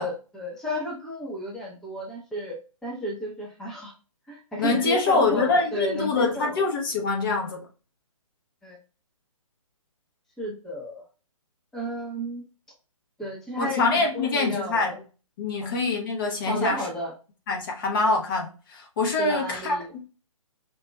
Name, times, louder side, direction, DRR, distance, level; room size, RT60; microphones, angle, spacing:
voice 1, 0.0-3.9 4.3-6.6 8.6-8.8 10.4-11.0 11.7-12.4 13.2-15.0 15.6-15.7 16.5-17.1 19.2-19.9, equal, 5° left, 0.7 m, -32 dB
voice 2, 4.6-7.7 13.6-14.9 15.4-16.9 17.5-19.8, left 3 dB, 40° left, 1.0 m, -25 dB
5.0 x 2.9 x 2.2 m
hypercardioid pair, 145°, 18 cm